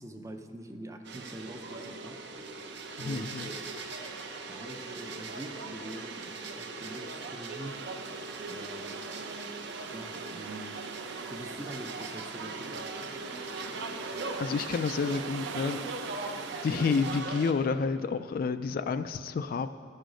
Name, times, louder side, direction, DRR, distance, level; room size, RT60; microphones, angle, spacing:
voice 1, 0.0-2.2 3.0-3.8 4.5-8.0 8.4-9.1 9.9-10.8 11.3-12.9, right 1 dB, 15° right, 5 dB, 0.5 m, -44 dB
sound 1, 1.0-17.5, right 3 dB, 60° right, 0.7 m, -39 dB
voice 2, 3.0-3.5 14.4-15.8 16.6-19.7, left 5 dB, 50° left, 10 dB, 0.3 m, -29 dB
sound 2, 7.6-17.2, right 7 dB, 85° right, 0.4 m, -45 dB
12.5 x 6.4 x 5.1 m, 2.3 s
head